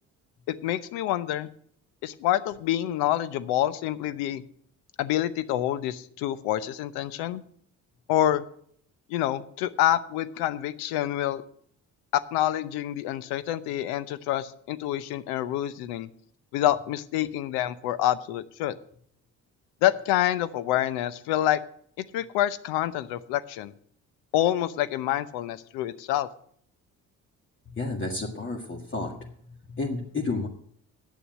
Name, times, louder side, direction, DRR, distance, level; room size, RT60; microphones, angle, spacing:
voice 1, 0.5-1.5 2.0-4.4 5.0-7.4 8.1-8.4 9.1-11.4 12.1-16.1 16.5-18.7 19.8-21.6 22.1-23.7 24.3-26.3, left 13 dB, 85° left, 16 dB, 0.8 m, -27 dB
voice 2, 27.7-29.3 29.7-30.5, left 3 dB, 30° left, -1 dB, 1.9 m, -31 dB
9.3 x 7.0 x 9.1 m, 0.63 s
supercardioid pair, 65°, 37 cm